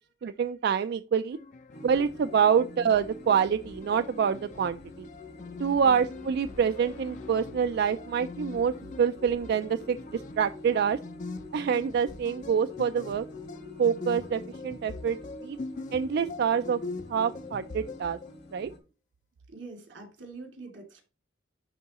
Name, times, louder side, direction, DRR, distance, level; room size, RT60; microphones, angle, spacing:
voice 1, 0.2-1.4 1.8-5.1 5.6-11.0 11.5-13.3 13.8-15.2 15.4-15.6 15.9-16.8 17.1-18.2 18.5-18.7, right 7 dB, 60° right, 11 dB, 0.3 m, -26 dB
sound 1, 1.3-18.5, left 3 dB, 45° left, 0.5 m, -43 dB
sound 2, 1.7-18.8, left 2 dB, 65° left, 2.1 m, -46 dB
sound 3, 4.2-13.0, left 1 dB, 80° left, 3.2 m, -55 dB
voice 2, 19.5-21.0, right 3 dB, 90° right, 3 dB, 2.5 m, -45 dB
10.5 x 3.7 x 2.9 m, 0.33 s
head